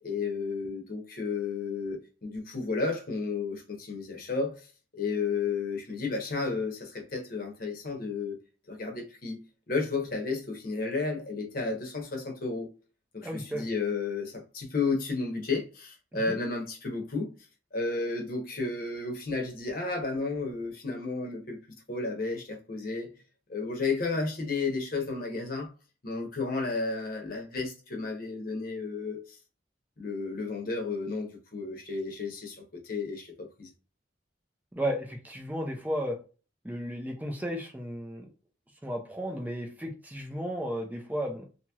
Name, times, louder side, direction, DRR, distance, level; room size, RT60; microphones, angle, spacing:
voice 1, 0.0-8.4 8.7-9.4 9.7-12.7 13.1-17.3 17.7-21.6 21.9-23.1 23.5-25.7 26.0-29.4 30.0-33.3 33.6-33.7, left 4 dB, 50° left, 0.9 m, -32 dB
voice 2, 13.2-13.7 16.1-16.4 34.7-36.2 36.6-38.3 38.8-41.4, equal, 10° right, 0.5 m, -34 dB
2.9 x 2.9 x 2.3 m
head